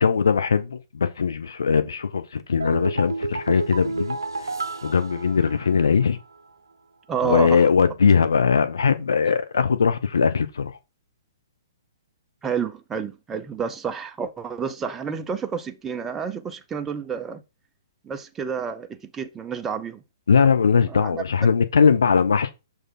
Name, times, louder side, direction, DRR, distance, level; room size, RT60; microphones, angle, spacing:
voice 1, 0.0-4.2 4.8-6.2 7.2-10.7 20.3-22.5, left 6 dB, 70° left, 0.7 m, -20 dB
sound 1, 2.6-6.0 6.3-6.4, right 3 dB, 80° right, 0.7 m, -31 dB
voice 2, 7.1-7.7 12.4-17.4 18.0-20.0 20.9-21.2, right 6 dB, 15° right, 0.7 m, -29 dB
6.5 x 4.3 x 3.7 m
figure-of-eight pair, 120°, 2 cm